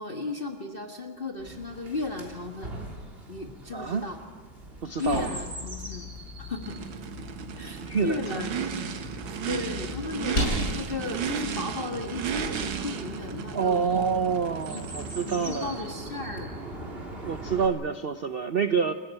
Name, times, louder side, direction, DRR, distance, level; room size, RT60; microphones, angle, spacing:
voice 1, 0.0-2.8 3.3-4.2 5.0-6.1 6.4-6.8 7.6-8.6 9.5-13.8 14.7-14.8 15.2-16.6, left 3 dB, 30° left, 3 dB, 1.5 m, -35 dB
Chirp tweet, 1.4-17.7, right 1 dB, 30° right, 3.4 m, -42 dB
voice 2, 3.7-4.1 4.8-5.3 7.8-8.2 13.5-15.7 17.2-18.9, right 6 dB, 65° right, 10 dB, 0.5 m, -27 dB
sound 1, 4.5-12.5, left 1 dB, 45° left, 7.4 m, -37 dB
Race car auto racing / Idling / Accelerating revving vroom, 6.6-16.0, right 6 dB, 90° right, 2.0 m, -34 dB
28.5 x 15.5 x 8.9 m, 1.4 s
omnidirectional pair, 2.1 m